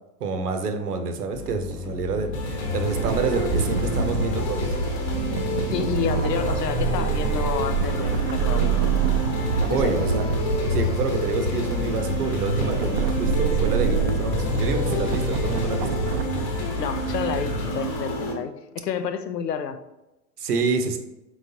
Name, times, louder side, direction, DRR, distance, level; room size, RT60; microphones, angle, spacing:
voice 1, 0.2-4.7 9.7-10.3 10.7-16.0 20.4-21.0, right 4 dB, 65° right, 7 dB, 0.9 m, -27 dB
sound 1, 1.3-18.1, left 3 dB, 10° right, 0.9 m, -34 dB
sound 2, 2.3-18.3, left 1 dB, 30° left, 1.0 m, -29 dB
sound 3, 3.0-16.2, right 6 dB, 45° right, 0.5 m, -27 dB
voice 2, 5.7-9.0 9.7-10.0 16.8-19.8, left 7 dB, 80° left, 10 dB, 0.6 m, -30 dB
4.7 x 4.0 x 2.7 m, 0.98 s
figure-of-eight pair, 95°, 49 cm